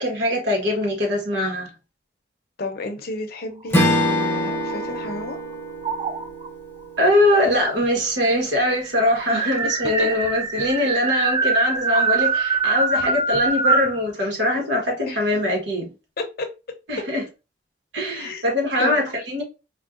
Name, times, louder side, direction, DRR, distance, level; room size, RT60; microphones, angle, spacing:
voice 1, 0.0-1.7 7.0-15.9 16.9-17.2 17.9-19.4, left 1 dB, 75° right, 1.3 m, -22 dB
voice 2, 2.6-5.4 9.3-9.4 10.0-10.1 14.5-14.6 15.1-15.2 16.2-16.5 18.1-19.0, left 2 dB, 55° left, 0.7 m, -32 dB
Strum, 3.7-8.3, left 1 dB, 10° left, 0.7 m, -25 dB
sound 1, 3.9-5.3 5.8-6.5 7.5-7.6 7.8-7.9 8.2-14.0, right 4 dB, 25° right, 0.4 m, -23 dB
4.4 x 2.2 x 2.5 m
head